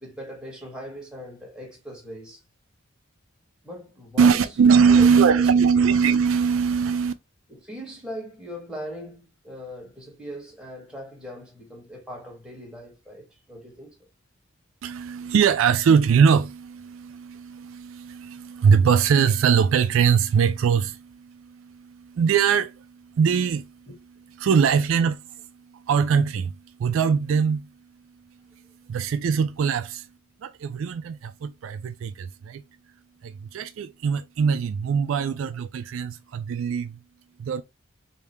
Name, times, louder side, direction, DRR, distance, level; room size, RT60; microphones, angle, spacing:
voice 1, 0.0-2.4 3.6-4.4 4.9-5.9 7.5-13.9, equal, 5° right, 1.2 m, -39 dB
voice 2, 4.2-7.1 14.8-23.9 24.4-27.7 28.9-30.1 30.4-32.6 33.2-37.0 37.4-37.6, right 6 dB, 70° right, 0.3 m, -22 dB
3.5 x 2.7 x 3.2 m
head